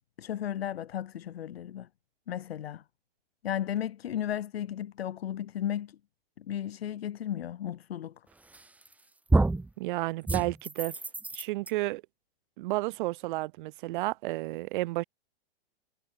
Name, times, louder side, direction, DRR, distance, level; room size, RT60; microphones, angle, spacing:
voice 1, 0.2-1.9 2.3-2.8 3.4-6.0 6.4-8.1, left 10 dB, 80° left, 1.8 m, -34 dB
sound 1, 8.5-8.9 9.3-9.7 10.3-11.7, right 2 dB, 5° right, 0.9 m, -27 dB
voice 2, 9.8-11.0 11.3-12.0 12.6-15.0, right 20 dB, 55° right, 3.0 m, -31 dB
hypercardioid pair, 130°, 30 cm